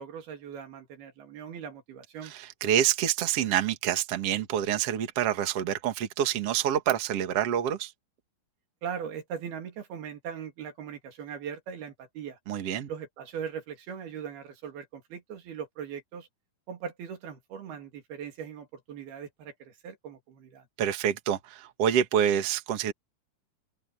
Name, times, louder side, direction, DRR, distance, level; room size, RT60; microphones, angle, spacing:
voice 1, 0.0-2.3 8.8-12.4 12.9-16.3 16.7-20.7, right 7 dB, 80° right, 4.6 m, -40 dB
voice 2, 2.3-7.9 12.5-12.9 20.8-22.9, right 10 dB, 50° right, 2.4 m, -27 dB
open air
omnidirectional pair, 4.3 m